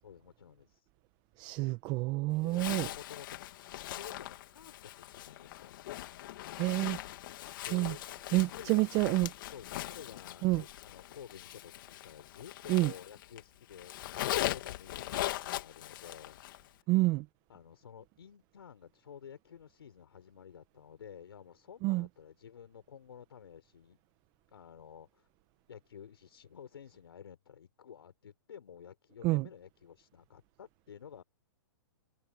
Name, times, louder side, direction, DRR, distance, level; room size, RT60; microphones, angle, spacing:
voice 1, 0.0-0.9 2.4-3.4 3.9-5.8 7.6-8.0 8.3-9.1 9.5-16.4 16.7-16.8 17.5-24.0 24.5-25.3 25.7-31.2, left 8 dB, 80° left, 4.7 m, -52 dB
voice 2, 1.4-2.9 6.6-7.0 7.7-7.9 8.3-9.3 10.4-10.6 12.7-12.9 16.9-17.2 21.8-22.1 29.2-29.5, right 21 dB, 35° right, 1.1 m, -28 dB
Zipper (clothing), 2.5-13.4 13.7-16.7, left 14 dB, 60° left, 2.6 m, -40 dB
hypercardioid pair, 135°, 13 cm